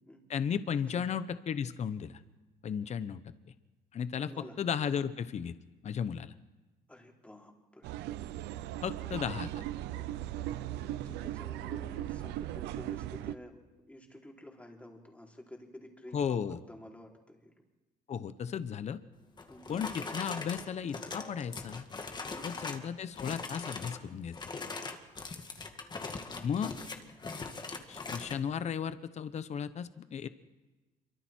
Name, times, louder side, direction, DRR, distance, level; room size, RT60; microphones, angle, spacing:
voice 1, 0.3-2.2 2.6-3.2 3.9-4.3 4.6-5.5 5.8-6.3 8.8-9.6 16.1-16.6 18.1-19.0 19.7-21.9 22.4-24.3 26.4-26.7 27.9-30.3, left 7 dB, 40° left, 13 dB, 1.0 m, -34 dB
voice 2, 4.2-4.6 6.9-7.9 10.8-13.6 13.9-17.5 19.5-19.8 22.3-22.6 26.6-26.9, left 1 dB, 10° left, 0 dB, 4.0 m, -50 dB
sound 1, 7.8-13.4, right 13 dB, 90° right, 0.8 m, -38 dB
sound 2, 19.4-22.9 23.1-24.0 24.3-28.4, left 3 dB, 25° left, 2.1 m, -41 dB
27.0 x 24.0 x 4.5 m, 1.2 s
cardioid pair, 110°, 17 cm